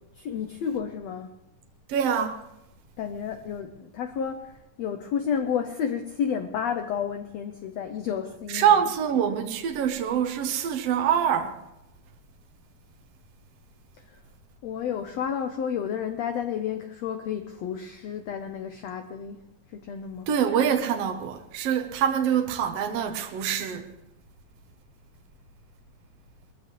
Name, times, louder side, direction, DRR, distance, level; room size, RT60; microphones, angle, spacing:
voice 1, 0.1-1.3 3.0-8.8 9.2-9.3 14.1-14.2 14.6-20.3, left 7 dB, 80° left, 1.5 m, -31 dB
voice 2, 1.9-2.4 8.5-11.6 20.3-23.9, right 8 dB, 70° right, 1.6 m, -25 dB
22.0 x 14.5 x 3.1 m
omnidirectional pair, 4.0 m